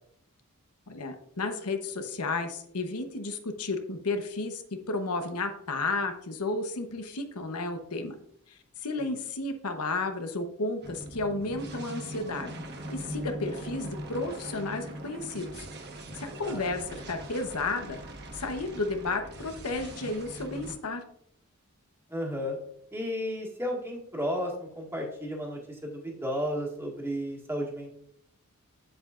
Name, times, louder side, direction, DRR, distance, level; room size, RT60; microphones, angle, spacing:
voice 1, 0.9-8.1 8.5-12.6 12.9-15.7 16.1-18.0 18.3-21.0, left 3 dB, 90° left, 6 dB, 1.0 m, -32 dB
sound 1, 10.8-20.7, right 1 dB, 50° right, 1.2 m, -41 dB
voice 2, 22.1-22.6 22.9-27.9, equal, 10° right, -1 dB, 1.7 m, -33 dB
7.9 x 7.9 x 2.4 m, 0.72 s
head